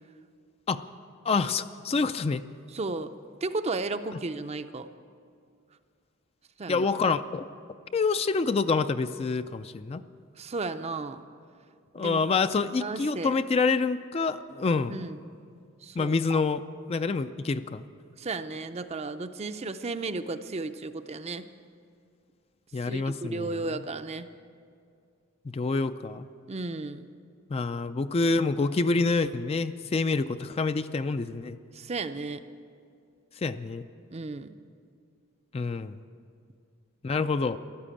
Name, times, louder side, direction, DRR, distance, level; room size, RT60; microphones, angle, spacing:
voice 1, 1.2-2.4 6.7-7.4 7.9-10.0 11.9-15.0 16.0-16.6 16.9-17.9 22.7-23.6 25.5-26.3 27.5-31.6 33.4-33.9 35.5-36.0 37.0-37.6, left 4 dB, 30° left, 11 dB, 0.4 m, -27 dB
voice 2, 2.7-3.1 3.4-4.9 6.6-6.9 10.4-11.2 12.0-12.2 12.8-13.4 14.9-15.2 15.8-16.4 18.2-21.5 22.8-24.3 26.5-27.1 31.7-32.4 34.1-34.5, right 3 dB, 30° right, 10 dB, 0.5 m, -34 dB
14.0 x 12.0 x 8.6 m, 2.3 s
head